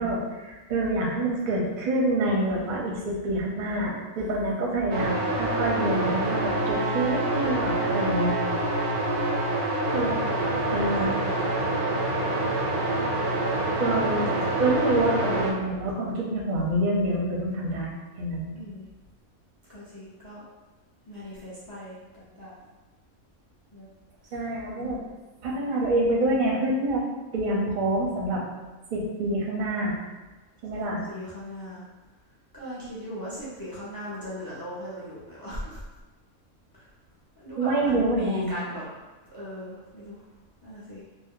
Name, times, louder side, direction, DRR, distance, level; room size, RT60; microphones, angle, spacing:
voice 1, 0.0-8.4 9.9-10.2 10.7-11.2 13.8-14.3 14.6-18.5 24.3-25.0 25.4-27.0 27.3-28.4 28.9-29.9 30.6-31.0 37.6-38.5, right 1 dB, 45° right, -3 dB, 0.6 m, -26 dB
voice 2, 2.4-3.0 10.6-11.5 18.5-18.9 19.7-20.4 21.1-22.6 23.7-23.9 24.3-24.4 30.7-31.8 32.5-35.8 36.7-36.9 37.4-38.8 39.3-40.2 40.6-41.0, equal, 35° left, -9 dB, 0.3 m, -39 dB
sound 1, 4.9-15.5, right 2 dB, 90° right, 1.1 m, -26 dB
2.6 x 2.1 x 3.6 m, 1.2 s
omnidirectional pair, 1.5 m